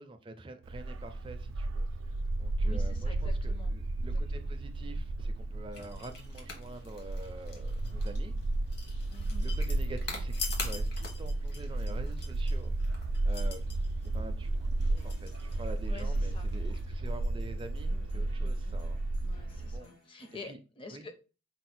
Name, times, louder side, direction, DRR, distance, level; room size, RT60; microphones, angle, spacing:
voice 1, 0.0-1.9 2.4-8.3 9.4-12.7 13.2-13.8 14.0-19.0 19.6-19.9 20.4-20.6 20.9-21.1, right 2 dB, 25° right, 0.4 m, -46 dB
Bark, 0.6-19.8, right 2 dB, 85° right, 0.4 m, -33 dB
voice 2, 2.6-4.5 9.1-9.6 15.9-16.5 17.9-18.8 19.2-21.1, left 3 dB, 25° left, 0.6 m, -49 dB
sound 1, 5.7-16.8, left 4 dB, 55° left, 1.1 m, -45 dB
sound 2, 15.0-20.5, left 3 dB, 75° left, 1.7 m, -61 dB
4.8 x 2.0 x 4.2 m
head